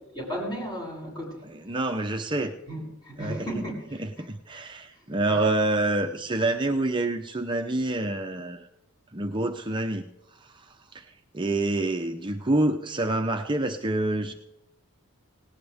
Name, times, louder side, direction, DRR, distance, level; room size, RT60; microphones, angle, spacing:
voice 1, 0.1-1.4 2.7-4.0 5.3-5.4, equal, 20° left, -3 dB, 6.9 m, -34 dB
voice 2, 1.4-2.6 3.2-3.5 4.0-8.7 9.1-10.1 10.4-11.1 11.3-14.3, right 2 dB, 20° right, 4 dB, 0.7 m, -27 dB
18.5 x 17.5 x 3.6 m, 0.91 s
head